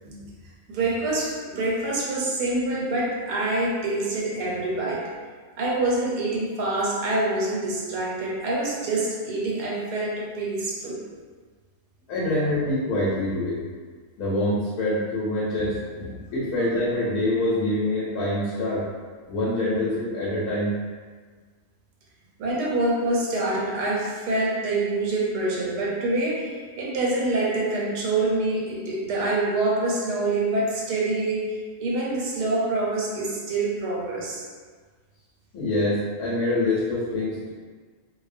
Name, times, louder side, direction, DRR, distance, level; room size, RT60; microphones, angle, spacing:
voice 1, 0.7-5.0 5.6-11.0 22.4-34.4, right 2 dB, 85° right, -4 dB, 1.2 m, -26 dB
voice 2, 12.1-13.6 14.2-18.9 19.3-20.7 35.5-37.5, left 1 dB, 70° left, -7 dB, 1.1 m, -25 dB
2.6 x 2.1 x 2.4 m, 1.5 s
omnidirectional pair, 1.7 m